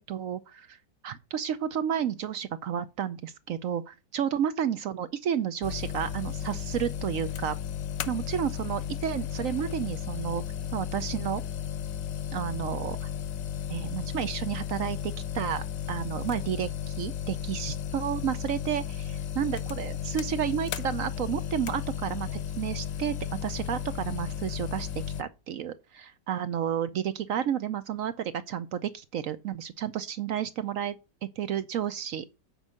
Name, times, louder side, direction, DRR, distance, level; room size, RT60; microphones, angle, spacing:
voice 1, 0.1-0.8 1.0-7.6 8.1-10.4 10.7-11.4 12.3-13.1 13.7-23.1 23.4-24.9 25.2-31.0 31.4-32.3, right 9 dB, 65° right, 0.8 m, -31 dB
sound 1, 5.6-25.2, left 9 dB, 80° left, 1.3 m, -34 dB
8.1 x 5.4 x 7.6 m
omnidirectional pair, 1.9 m